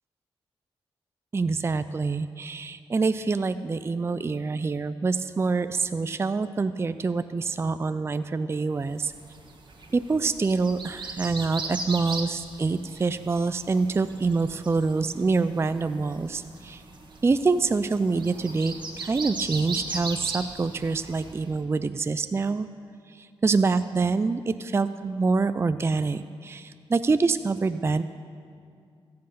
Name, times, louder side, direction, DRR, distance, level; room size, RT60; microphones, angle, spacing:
voice 1, 1.3-9.1 9.9-16.8 17.2-22.7 23.4-28.0, right 4 dB, 25° right, 12 dB, 0.4 m, -26 dB
sound 1, 9.0-21.5, right 3 dB, 50° right, 1.4 m, -38 dB
14.5 x 7.6 x 5.7 m, 2.3 s
cardioid pair, 60°, 10 cm